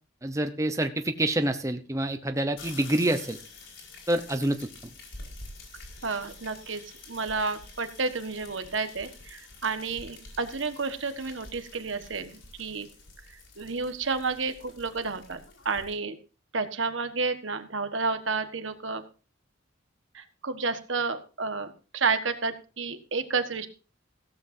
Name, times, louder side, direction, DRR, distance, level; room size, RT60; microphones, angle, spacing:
voice 1, 0.2-3.4 4.1-4.7, right 1 dB, 15° right, 7 dB, 0.8 m, -27 dB
sound 1, 2.6-15.9, left 3 dB, 65° left, 4.9 m, -48 dB
voice 2, 6.0-6.8 7.1-12.9 13.6-15.4 15.6-16.2 16.5-19.0 20.1-23.7, right 4 dB, 70° right, 9 dB, 1.5 m, -31 dB
16.0 x 13.5 x 2.7 m, 0.34 s
head